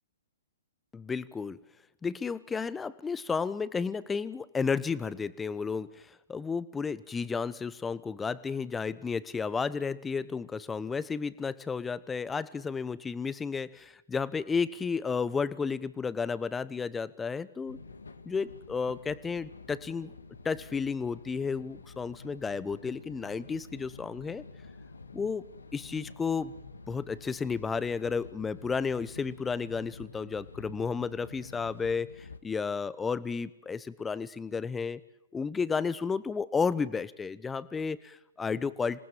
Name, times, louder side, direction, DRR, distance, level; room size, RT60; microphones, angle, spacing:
voice 1, 0.9-1.6 2.0-17.8 18.3-20.1 20.4-24.4 25.1-25.4 25.7-26.5 26.9-35.0 35.3-39.0, left 5 dB, 10° left, 17 dB, 1.0 m, -32 dB
sound 1, 17.6-32.4, left 4 dB, 80° left, 1.8 m, -49 dB
27.0 x 19.0 x 7.5 m, 0.87 s
figure-of-eight pair, 120°, 0 cm